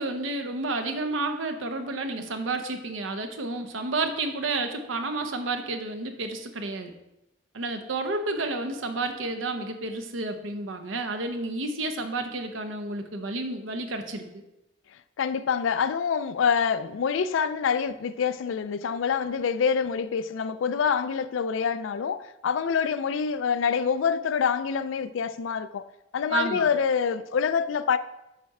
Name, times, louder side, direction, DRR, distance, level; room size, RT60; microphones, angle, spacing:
voice 1, 0.0-6.9 7.5-14.4 26.3-26.7, right 3 dB, 85° right, 0.8 m, -31 dB
voice 2, 15.2-25.8 26.1-28.0, left 6 dB, 85° left, 0.4 m, -26 dB
7.3 x 4.3 x 4.8 m
head